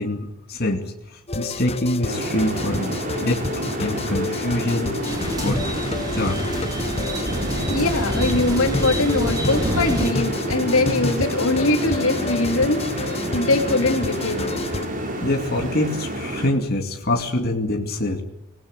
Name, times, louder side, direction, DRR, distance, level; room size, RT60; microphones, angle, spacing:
voice 1, 0.0-3.5 3.8-4.9 5.4-5.6 6.1-6.5 15.2-18.2, left 1 dB, 45° left, 2 dB, 2.5 m, -25 dB
sound 1, 1.3-14.9, left 2 dB, 30° left, 1.1 m, -29 dB
sound 2, 2.0-16.5, right 1 dB, 40° right, 5.5 m, -29 dB
sound 3, 5.0-10.1, equal, 20° right, 5.4 m, -28 dB
voice 2, 7.7-14.6, left 2 dB, 75° left, 5 dB, 3.1 m, -22 dB
26.0 x 19.5 x 8.8 m, 0.77 s
head